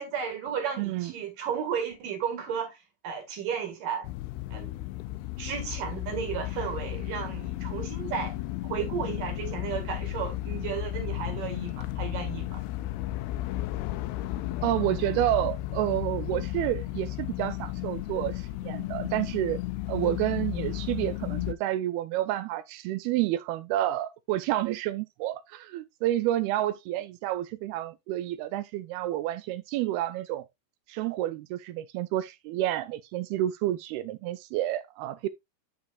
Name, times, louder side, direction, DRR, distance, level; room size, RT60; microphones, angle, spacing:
voice 1, 0.0-4.1 4.5-4.8 5.4-8.3 8.6-12.6, right 7 dB, 60° right, 3.1 m, -34 dB
voice 2, 0.8-1.1 14.6-19.6 19.9-30.4 30.9-35.3, right 14 dB, 80° right, 2.4 m, -29 dB
sound 1, 4.0-21.5, left 16 dB, 90° left, 2.7 m, -34 dB
11.0 x 4.9 x 2.3 m
omnidirectional pair, 4.6 m